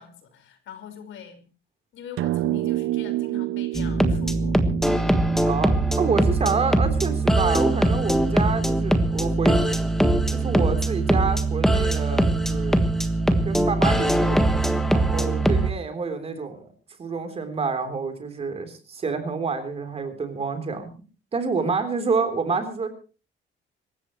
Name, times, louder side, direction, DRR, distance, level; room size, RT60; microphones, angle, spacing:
voice 1, 0.0-1.4 1.9-4.6 15.3-15.7 21.6-21.8, left 8 dB, 70° left, 8 dB, 4.8 m, -42 dB
sound 1, 2.2-6.7, right 17 dB, 80° right, 0.7 m, -29 dB
sound 2, 3.7-15.7, right 1 dB, ahead, 1.5 m, -21 dB
voice 2, 5.0-9.6 10.3-12.8 13.4-14.4 14.9-16.6 17.0-20.9 21.3-22.9, right 4 dB, 30° right, 8 dB, 3.6 m, -28 dB
26.5 x 14.5 x 3.1 m, 0.36 s
cardioid pair, 170°, 21 cm